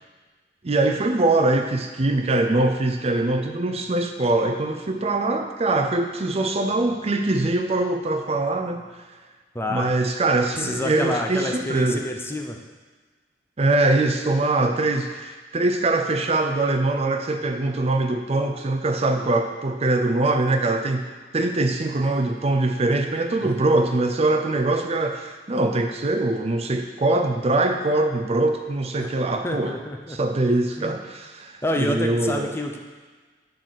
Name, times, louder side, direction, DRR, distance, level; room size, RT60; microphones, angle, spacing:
voice 1, 0.6-8.8 9.7-12.0 13.6-29.8 30.1-32.6, right 2 dB, 35° right, 5 dB, 0.5 m, -23 dB
voice 2, 9.5-9.9 10.6-12.6 23.4-23.5 29.0-29.1 29.4-30.2 30.8-30.9 31.6-32.8, left 1 dB, 15° left, 2 dB, 0.8 m, -28 dB
10.5 x 4.0 x 6.4 m, 1.4 s
head